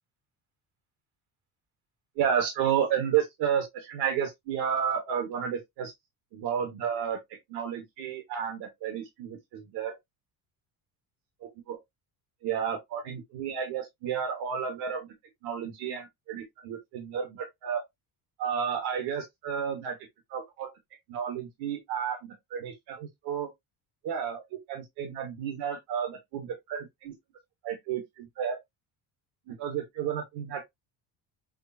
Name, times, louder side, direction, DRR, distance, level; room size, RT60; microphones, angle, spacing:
voice 1, 2.2-5.9 6.3-7.2 7.5-10.0 11.7-11.8 12.4-15.1 15.4-17.8 18.4-20.0 20.3-20.7 21.1-23.5 24.0-27.1 27.6-28.6 29.5-30.6, right 8 dB, 80° right, 1.3 m, -31 dB
6.4 x 2.4 x 2.7 m
cardioid pair, 150°, 38 cm